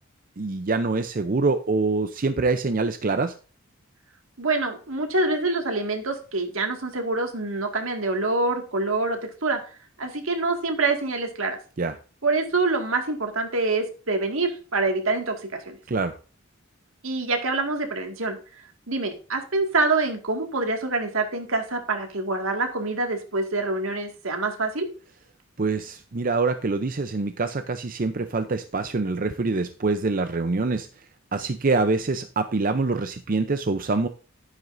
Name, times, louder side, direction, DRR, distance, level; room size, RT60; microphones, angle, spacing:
voice 1, 0.4-3.3 11.8-11.9 15.9-16.1 25.6-30.9 31.3-34.1, right 3 dB, 40° right, 9 dB, 0.6 m, -25 dB
voice 2, 4.4-9.6 10.0-11.6 12.2-15.8 17.0-18.4 18.9-24.9, right 3 dB, 75° right, 4 dB, 2.1 m, -26 dB
11.0 x 9.9 x 2.6 m, 0.37 s
head